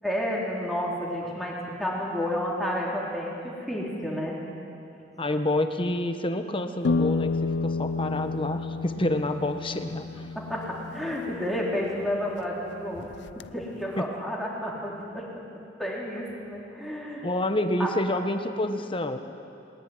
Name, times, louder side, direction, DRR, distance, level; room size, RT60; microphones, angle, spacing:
voice 1, 0.0-4.4 10.4-13.1 13.4-15.3 15.8-17.3 17.8-17.9, equal, ahead, -4 dB, 4.2 m, -31 dB
voice 2, 5.2-10.3 14.0-14.1 17.2-19.2, left 1 dB, 30° left, 7 dB, 1.3 m, -28 dB
sound 1, 6.8-12.4 12.9-13.8, left 3 dB, 80° left, 0.5 m, -31 dB
20.5 x 20.0 x 9.5 m, 2.6 s
head